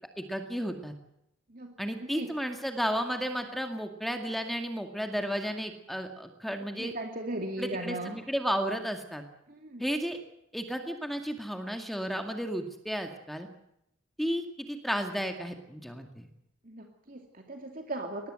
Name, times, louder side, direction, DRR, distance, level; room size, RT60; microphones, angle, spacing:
voice 1, 0.2-0.9 1.8-6.9 7.6-9.2 9.8-10.2 10.5-13.5 14.2-16.3, equal, ahead, 5 dB, 2.1 m, -33 dB
voice 2, 2.0-2.3 6.8-8.2 9.5-9.9 16.6-18.3, right 1 dB, 45° right, 3 dB, 2.4 m, -38 dB
22.5 x 19.5 x 7.8 m, 0.80 s
head